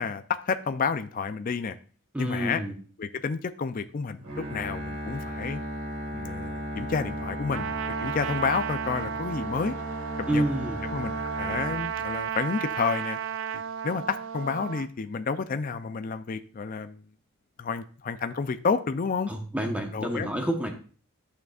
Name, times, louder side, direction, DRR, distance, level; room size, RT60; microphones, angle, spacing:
voice 1, 0.0-1.8 2.2-2.6 3.0-5.6 6.1-9.7 10.3-10.4 10.9-13.2 13.5-17.0 17.6-19.3 19.9-20.3, left 5 dB, 40° left, 10 dB, 0.4 m, -30 dB
voice 2, 2.1-2.8 10.3-10.8 19.3-20.7, right 1 dB, 5° right, 2 dB, 0.9 m, -28 dB
Bowed string instrument, 4.2-12.4, equal, 90° right, 2.4 m, -36 dB
Trumpet, 7.5-14.9, right 8 dB, 60° right, 0.4 m, -34 dB
10.5 x 6.6 x 2.4 m, 0.41 s
head